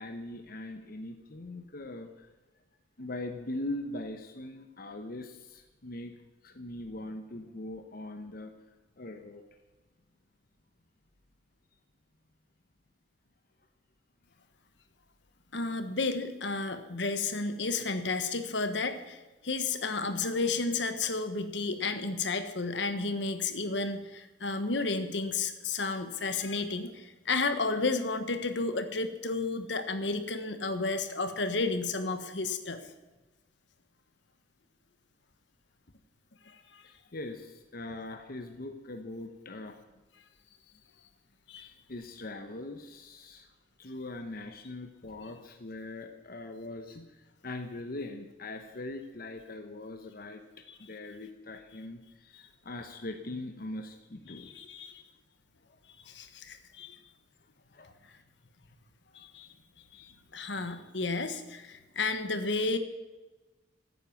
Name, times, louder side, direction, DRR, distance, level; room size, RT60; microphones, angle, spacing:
voice 1, 0.0-2.3 3.0-6.2 6.4-8.5 9.0-9.4 36.8-39.8 41.6-43.5 43.8-54.6 55.7-55.8 57.7-58.0, left 2 dB, 55° left, 6 dB, 1.1 m, -41 dB
voice 2, 15.5-32.8 36.4-36.8 41.5-41.7 50.7-50.8 54.3-55.0 56.1-57.0 59.1-59.5 59.9-62.8, left 3 dB, 70° left, 9 dB, 1.3 m, -32 dB
14.5 x 9.5 x 7.2 m, 1.1 s
head